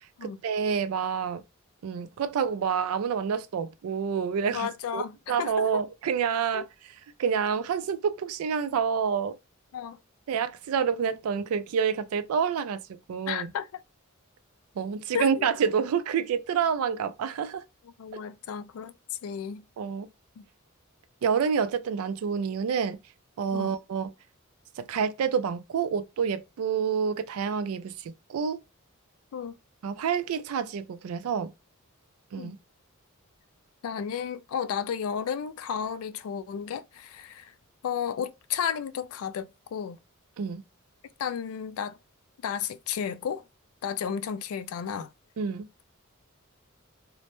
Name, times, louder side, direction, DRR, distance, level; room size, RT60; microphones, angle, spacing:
voice 1, 0.2-1.4 1.8-6.7 7.2-9.4 10.3-13.5 14.8-17.6 19.8-20.1 21.2-23.0 23.4-24.1 24.8-28.6 29.8-31.5 32.3-32.6 40.4-40.6 45.4-45.7, right 6 dB, 85° right, 0.3 m, -28 dB
voice 2, 4.5-5.8 6.5-6.7 9.7-10.0 13.3-13.8 15.1-15.5 18.0-18.9 19.2-19.6 20.4-20.5 23.5-23.7 29.3-29.5 32.4-32.5 33.8-37.5 37.8-40.0 41.2-42.0 42.4-43.4 43.8-45.1, left 7 dB, 75° left, 0.3 m, -33 dB
2.1 x 2.1 x 2.9 m
head